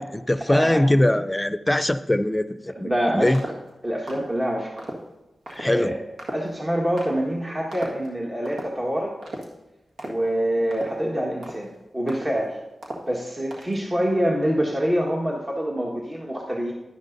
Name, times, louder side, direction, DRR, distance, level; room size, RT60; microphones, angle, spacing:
voice 1, 0.0-3.4 5.5-5.9, left 1 dB, 15° left, 12 dB, 0.6 m, -22 dB
voice 2, 0.5-0.8 2.7-3.3 3.8-4.7 5.6-6.0 6.3-9.1 10.0-12.6 13.1-16.7, equal, 30° right, -2 dB, 1.6 m, -25 dB
sound 1, 3.3-3.7 4.1-4.3 4.8-5.0 5.5-5.7 6.2-6.6 7.0-7.2 7.7-8.1 8.5-8.8 9.2-9.5 10.0-10.3 10.7-11.1 11.4-11.7 12.1-12.5 12.8-13.2 13.5-13.8, right 1 dB, 90° right, 1.6 m, -36 dB
11.5 x 10.5 x 2.7 m, 1.0 s
cardioid pair, 45°, 0 cm